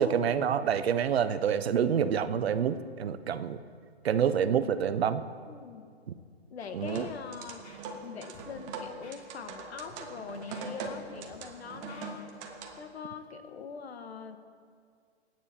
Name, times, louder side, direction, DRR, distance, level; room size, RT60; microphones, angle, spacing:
voice 1, 0.0-3.6 4.0-5.2 6.7-7.0, right 8 dB, 65° right, 12 dB, 1.0 m, -27 dB
voice 2, 5.5-5.9 6.5-7.7 8.0-12.3 12.8-14.4, left 6 dB, 70° left, 8 dB, 1.6 m, -43 dB
sound 1, 6.6-12.9, right 4 dB, 20° right, 1.2 m, -42 dB
Scratching (performance technique), 6.9-7.1 7.4-8.1 8.3-8.5 9.0-9.2 9.7-9.9 10.3-11.4 11.7-12.0, left 3 dB, 35° left, 3.3 m, -53 dB
25.5 x 9.5 x 4.4 m, 2.1 s
hypercardioid pair, 155°, 33 cm